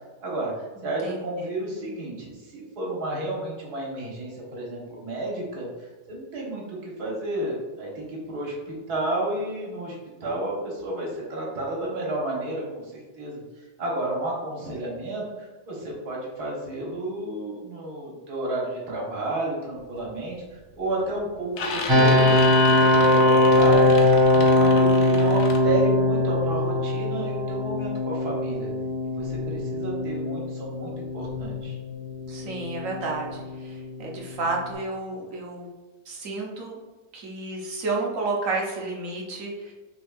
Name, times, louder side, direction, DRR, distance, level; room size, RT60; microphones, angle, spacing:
voice 1, 0.2-0.5 0.8-13.4 13.8-23.9 24.3-28.7 29.1-31.8, right 1 dB, 75° right, -3 dB, 1.7 m, -31 dB
voice 2, 0.8-1.5 32.3-35.7 36.1-36.8 37.1-39.7, right 3 dB, 60° right, -2 dB, 1.2 m, -31 dB
sound 1, 19.8-20.1 20.5-21.0 21.3-25.6, left 3 dB, 65° left, 1.1 m, -35 dB
sound 2, 21.9-34.7, left 1 dB, 40° right, 0.3 m, -22 dB
6.0 x 3.6 x 2.4 m, 1.3 s
omnidirectional pair, 1.7 m